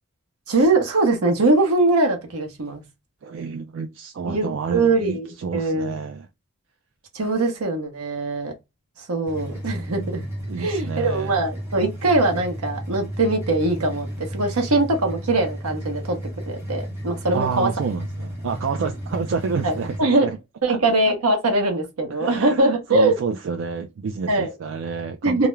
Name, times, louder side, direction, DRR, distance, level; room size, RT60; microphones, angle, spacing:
voice 1, 0.5-2.8 4.2-4.5 4.7-5.9 7.1-8.5 9.0-10.2 10.6-16.2 16.5-17.7 19.6-20.3 20.6-23.1 24.3-24.5 25.2-25.5, right 2 dB, 80° right, 0.8 m, -22 dB
voice 2, 3.2-6.3 10.5-11.4 17.3-20.4 20.7-20.8 22.2-25.5, right 5 dB, 55° right, 0.3 m, -29 dB
sound 1, 9.3-20.0, equal, 10° right, 0.9 m, -33 dB
2.3 x 2.0 x 3.0 m
head